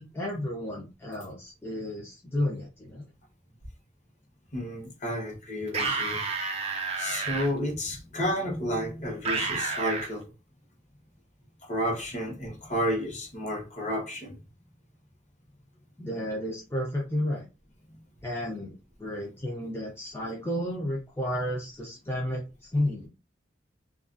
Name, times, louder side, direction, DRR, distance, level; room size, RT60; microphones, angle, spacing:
voice 1, 0.0-3.0 16.0-17.4 18.2-23.1, left 1 dB, 15° left, 0.4 m, -32 dB
voice 2, 4.5-6.2 7.0-10.3 11.6-14.4, equal, 40° left, 0.9 m, -31 dB
sound 1, 5.7-7.5 9.2-10.1, right 4 dB, 35° right, 0.5 m, -30 dB
2.3 x 2.2 x 2.5 m
head